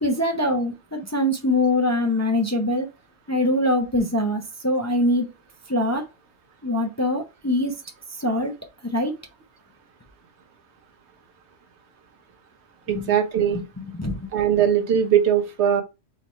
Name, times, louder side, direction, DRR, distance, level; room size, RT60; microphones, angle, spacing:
voice 1, 0.0-2.9 3.3-5.3 5.7-6.0 6.6-7.7 8.2-8.5 8.9-9.1 12.9-13.1 13.8-14.3, left 1 dB, 20° left, 0.5 m, -23 dB
voice 2, 12.9-13.6 14.3-15.8, right 9 dB, 75° right, 1.0 m, -20 dB
4.0 x 3.1 x 4.2 m
omnidirectional pair, 1.1 m